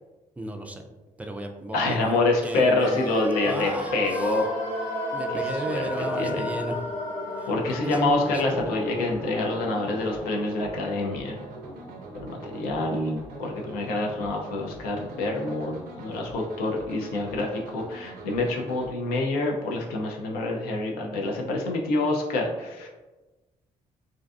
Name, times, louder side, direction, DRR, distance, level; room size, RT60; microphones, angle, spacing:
voice 1, 0.4-0.8 1.2-2.2 2.4-3.1 3.4-4.5 5.1-6.8 7.4-8.7, right 2 dB, 10° right, 4 dB, 0.3 m, -34 dB
voice 2, 1.7-4.5 5.3-5.8 6.1-6.5 7.5-11.4 12.1-22.9, left 2 dB, 85° left, 1 dB, 0.4 m, -27 dB
sound 1, 2.8-12.7 13.0-13.1, left 1 dB, 60° left, 0.9 m, -34 dB
sound 2, 8.1-18.9, right 2 dB, 80° right, 0.4 m, -43 dB
2.5 x 2.3 x 2.3 m, 1.2 s
supercardioid pair, 65°, 15 cm